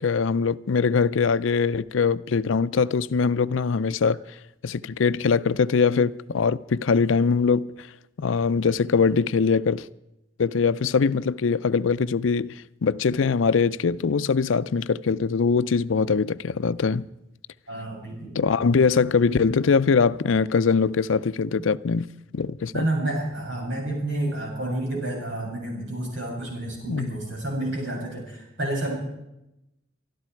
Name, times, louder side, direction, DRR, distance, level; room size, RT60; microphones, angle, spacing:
voice 1, 0.0-4.2 4.6-7.9 8.2-9.9 10.4-12.5 12.8-17.1 18.4-22.1 22.3-22.9 26.9-27.1, left 5 dB, 85° left, 0.5 m, -22 dB
voice 2, 17.7-18.4 22.7-28.9, right 1 dB, 70° right, 7.1 m, -29 dB
25.0 x 12.5 x 4.5 m
head